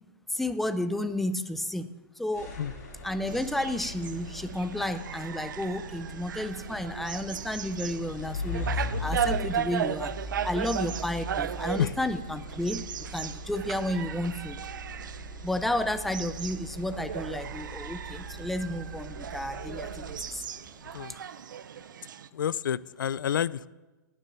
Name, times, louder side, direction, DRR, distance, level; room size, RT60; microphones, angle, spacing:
voice 1, 0.3-1.9 2.2-2.5 3.0-10.1 10.4-14.6 15.4-20.5, left 1 dB, ahead, 11 dB, 0.4 m, -32 dB
sound 1, 2.3-20.6, left 1 dB, 60° left, 4.7 m, -40 dB
sound 2, 3.3-22.3, right 8 dB, 80° right, 0.7 m, -37 dB
voice 2, 22.3-23.7, left 9 dB, 85° left, 21 dB, 0.5 m, -29 dB
17.5 x 10.0 x 5.7 m, 1.2 s
hypercardioid pair, 165°, 10 cm